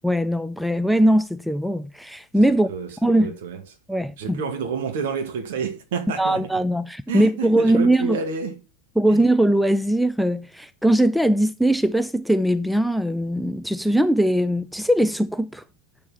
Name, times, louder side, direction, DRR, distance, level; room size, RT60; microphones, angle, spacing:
voice 1, 0.0-2.7 3.0-3.3 3.9-4.4 6.2-8.2 9.0-15.6, right 1 dB, ahead, 0.4 m, -20 dB
voice 2, 2.7-3.6 4.2-6.5 7.1-8.6 9.1-9.3, right 5 dB, 55° right, 2.3 m, -29 dB
8.5 x 7.1 x 4.2 m
figure-of-eight pair, 90°, 0 cm